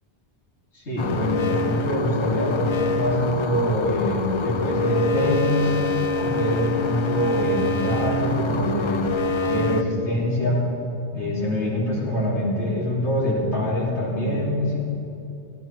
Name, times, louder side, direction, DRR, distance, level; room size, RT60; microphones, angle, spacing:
voice 1, 0.7-5.7 6.1-9.1 9.5-10.6 11.1-14.8, equal, 85° left, -8 dB, 3.3 m, -24 dB
sound 1, 1.0-9.8, left 2 dB, 45° left, 0.4 m, -25 dB
16.5 x 12.5 x 4.5 m, 2.8 s
omnidirectional pair, 1.1 m